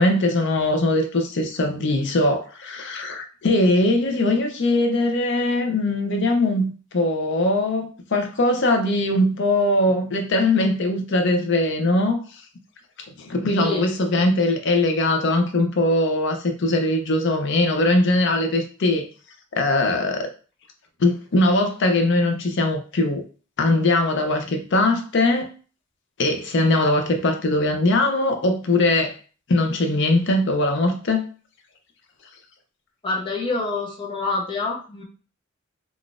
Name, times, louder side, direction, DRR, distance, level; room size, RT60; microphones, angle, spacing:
voice 1, 0.0-12.2 13.2-19.1 19.5-20.3 21.0-23.2 23.6-25.5 26.2-29.2 29.5-31.3, left 2 dB, 60° left, 0.6 m, -21 dB
voice 2, 33.0-35.0, left 3 dB, 25° left, 0.8 m, -26 dB
3.8 x 2.4 x 2.4 m
head